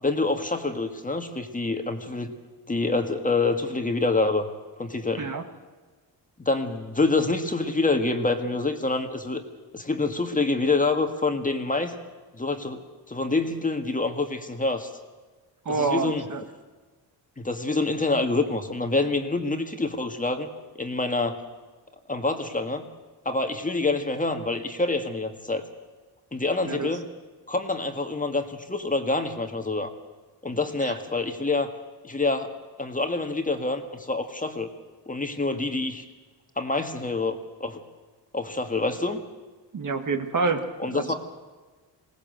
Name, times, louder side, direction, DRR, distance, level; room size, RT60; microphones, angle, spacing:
voice 1, 0.0-2.3 2.7-4.5 4.8-5.3 6.4-9.4 9.7-11.9 12.3-12.8 13.1-14.9 15.7-16.2 17.4-20.5 20.8-21.4 22.1-22.9 23.2-25.6 26.3-27.1 27.5-29.9 30.4-31.7 32.0-32.5 32.8-34.7 35.1-36.0 36.6-37.8 38.3-39.2 40.8-41.1, left 3 dB, 20° left, 6 dB, 1.8 m, -26 dB
voice 2, 15.7-16.4 26.6-26.9 30.8-30.9 39.7-41.1, right 4 dB, 45° right, 7 dB, 1.9 m, -27 dB
21.0 x 18.0 x 7.9 m, 1.3 s
cardioid pair, 95°, 45 cm